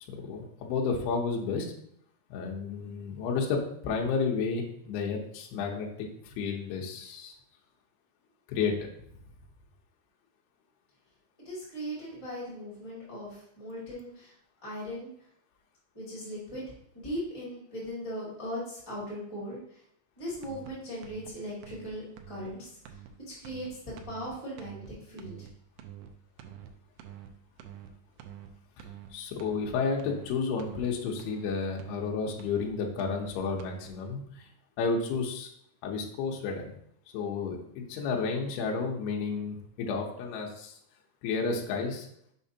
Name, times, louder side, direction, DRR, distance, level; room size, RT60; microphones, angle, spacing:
voice 1, 0.1-1.7 2.3-7.3 8.5-8.7 29.1-34.5 34.8-35.5 35.8-36.7 37.1-40.7 41.2-42.1, left 5 dB, 75° left, 0 dB, 2.6 m, -31 dB
voice 2, 11.4-14.3 14.6-15.1 15.9-16.6 16.9-19.8 20.2-23.0 23.4-25.5, equal, 40° left, -7 dB, 0.4 m, -39 dB
sound 1, 20.4-20.7 21.0-21.3 21.6-21.9 22.2-22.5 22.8-23.1 23.4-23.7 24.0-24.3 24.6-24.9 25.2-25.5 25.8-26.1 26.4-26.7 27.0-27.3 27.6-27.9 28.2-28.5 28.8-29.1 29.4-29.7 30.0-30.3 30.6-30.9 31.2-31.5 31.8-32.1 32.4-32.7 33.0-33.3 33.6-33.9, right 11 dB, 90° right, 2.3 m, -46 dB
6.7 x 5.4 x 2.8 m, 0.69 s
omnidirectional pair, 5.2 m